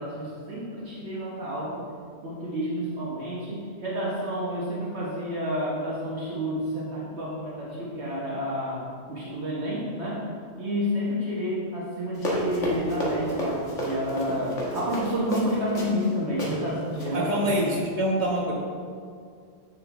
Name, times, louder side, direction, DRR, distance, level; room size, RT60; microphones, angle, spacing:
voice 1, 0.0-1.9 2.2-10.3 10.6-17.3, equal, 60° right, -6 dB, 1.4 m, -30 dB
Run, 12.2-16.1 16.4-16.5 16.9-17.1, equal, 70° left, 1.6 m, -30 dB
voice 2, 17.1-18.5, right 1 dB, 30° right, -6 dB, 1.4 m, -25 dB
7.6 x 5.7 x 3.4 m, 2.2 s
omnidirectional pair, 1.3 m